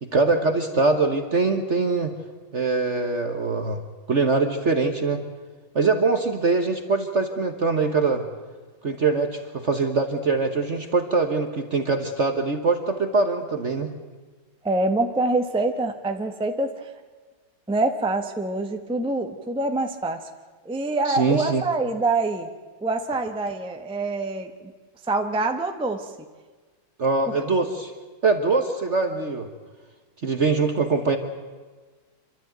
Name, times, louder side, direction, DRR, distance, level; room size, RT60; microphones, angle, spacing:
voice 1, 0.0-2.1 2.5-3.8 4.1-5.2 5.7-8.2 8.8-13.9 21.1-21.6 27.0-27.9 28.2-29.5 30.2-31.2, right 3 dB, 40° right, 6 dB, 1.2 m, -23 dB
voice 2, 14.6-16.9 17.7-20.2 20.6-22.5 22.8-24.7 25.1-26.1, right 2 dB, 5° right, 5 dB, 0.8 m, -25 dB
27.0 x 13.0 x 9.2 m, 1.4 s
omnidirectional pair, 2.3 m